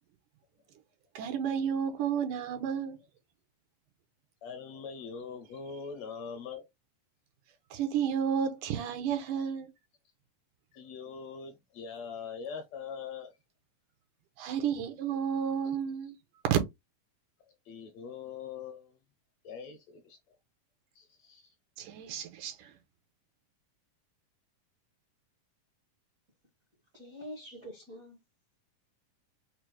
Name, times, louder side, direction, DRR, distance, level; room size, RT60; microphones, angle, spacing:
voice 1, 1.2-3.0 7.7-9.7 14.4-16.1 16.5-16.6 21.8-22.7, right 8 dB, 85° right, 2.4 m, -31 dB
voice 2, 4.4-6.6 10.7-13.3 17.7-19.0 19.4-20.2 21.0-21.5, left 6 dB, 75° left, 1.7 m, -42 dB
voice 3, 26.9-28.2, equal, 70° right, 0.8 m, -45 dB
6.0 x 2.0 x 3.1 m
omnidirectional pair, 3.6 m